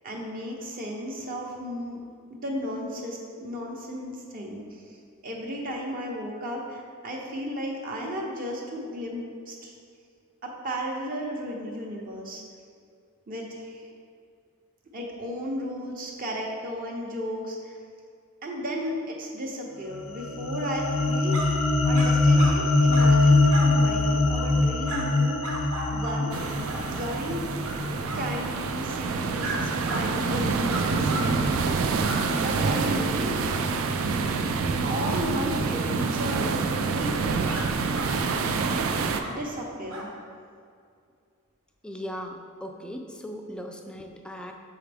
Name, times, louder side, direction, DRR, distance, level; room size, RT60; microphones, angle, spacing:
voice 1, 0.0-2.0 2.3-5.0 5.2-9.8 10.4-12.4 13.3-13.9 14.9-17.8 18.4-25.6 25.9-26.3 26.7-27.4 28.1-31.8 32.3-33.3 34.8-37.2 39.2-40.1, equal, 40° right, -1 dB, 0.7 m, -34 dB
sound 1, 19.9-28.4, left 2 dB, 70° left, 0.5 m, -23 dB
sound 2, 21.3-21.5 21.9-22.1 22.4-22.6 22.9-23.1 23.5-23.7 24.3-24.5 24.8-25.0 25.4-26.2 26.6-26.8 27.6-27.8 28.0-28.2 29.4-29.6 29.8-30.0 30.7-31.3 31.5-31.7 32.0-32.2 37.5-37.6 37.9-38.7 39.1-39.4 39.9-40.1, right 2 dB, 85° right, 1.1 m, -35 dB
sound 3, 26.3-39.2, right 4 dB, 70° right, 0.4 m, -27 dB
voice 2, 41.8-44.5, equal, 5° left, 3 dB, 0.3 m, -38 dB
5.9 x 4.7 x 3.4 m, 2.2 s
head